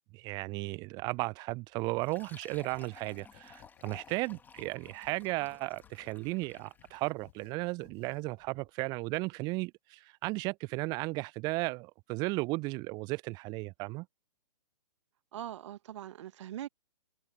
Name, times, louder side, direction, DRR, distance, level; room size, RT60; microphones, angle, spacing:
voice 1, 0.1-14.1, right 24 dB, 20° right, 0.6 m, -35 dB
Fill (with liquid), 2.0-7.1, left 5 dB, 10° left, 2.7 m, -55 dB
sound 1, 2.2-8.7, left 31 dB, 30° left, 6.0 m, -62 dB
voice 2, 15.3-16.7, right 11 dB, 45° right, 1.4 m, -42 dB
figure-of-eight pair, 120°, 21 cm